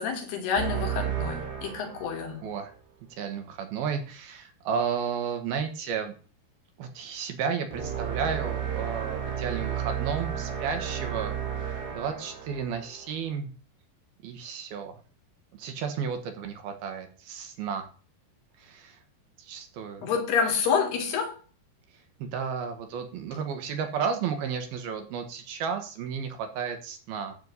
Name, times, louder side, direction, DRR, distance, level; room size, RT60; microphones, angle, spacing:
voice 1, 0.0-2.4 20.0-21.4, left 6 dB, 70° left, 3 dB, 4.4 m, -28 dB
sound 1, 0.6-2.6 7.7-13.3, right 8 dB, 30° right, 2.0 m, -33 dB
voice 2, 2.4-2.7 3.1-6.1 6.8-13.5 14.2-15.0 15.6-17.9 18.6-19.0 19.4-20.1 22.2-27.3, right 6 dB, 65° right, 6 dB, 3.1 m, -33 dB
12.0 x 4.7 x 8.2 m, 0.38 s
omnidirectional pair, 5.0 m